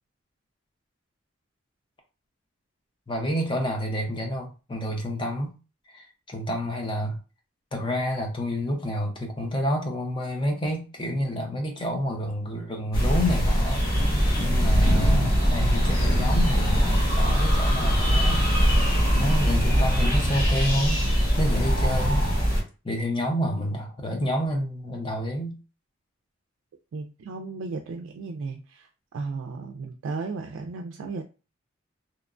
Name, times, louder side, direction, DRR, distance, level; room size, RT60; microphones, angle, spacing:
voice 1, 3.1-5.5 5.9-7.2 7.7-13.9 14.4-18.5 19.1-21.1 21.4-22.2 22.8-25.6, equal, 25° left, 0.6 m, -29 dB
sound 1, 12.9-22.6, equal, 50° left, 1.1 m, -22 dB
voice 2, 26.9-28.9 29.1-31.2, right 4 dB, 90° right, 0.3 m, -34 dB
2.8 x 2.1 x 2.5 m
head